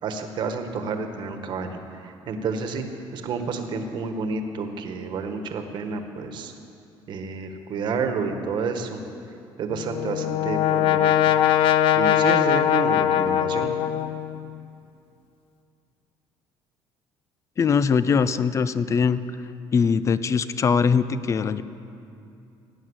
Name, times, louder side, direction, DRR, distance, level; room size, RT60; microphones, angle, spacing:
voice 1, 0.0-2.9 3.1-6.5 7.1-9.0 9.6-11.1 11.9-13.7, right 4 dB, 55° right, 6 dB, 1.5 m, -30 dB
Brass instrument, 9.7-14.5, left 11 dB, 85° left, 0.6 m, -21 dB
voice 2, 17.6-19.2 19.7-21.6, left 6 dB, 35° left, 14 dB, 0.6 m, -21 dB
17.5 x 9.2 x 8.1 m, 2.6 s
cardioid pair, 125°, 9 cm